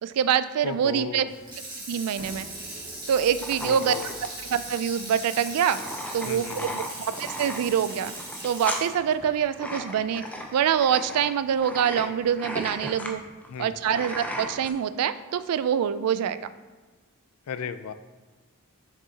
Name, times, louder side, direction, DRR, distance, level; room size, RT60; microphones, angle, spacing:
voice 1, 0.0-1.2 1.9-2.5 3.1-3.9 4.5-5.8 6.1-8.1 8.4-10.2 10.5-13.2 13.6-16.4, right 8 dB, 80° right, 14 dB, 0.3 m, -25 dB
voice 2, 0.6-1.3 3.6-4.2 6.2-6.8 13.5-13.8 17.5-17.9, left 6 dB, 70° left, 11 dB, 0.4 m, -35 dB
Water tap faucet / Sink (filling or washing), 1.3-10.5 10.9-11.0, right 2 dB, 20° right, 1.6 m, -39 dB
sound 1, 2.2-7.8, equal, 50° right, 0.8 m, -50 dB
sound 2, 3.4-14.7, equal, 5° left, 0.5 m, -36 dB
6.4 x 5.4 x 2.8 m, 1.3 s
head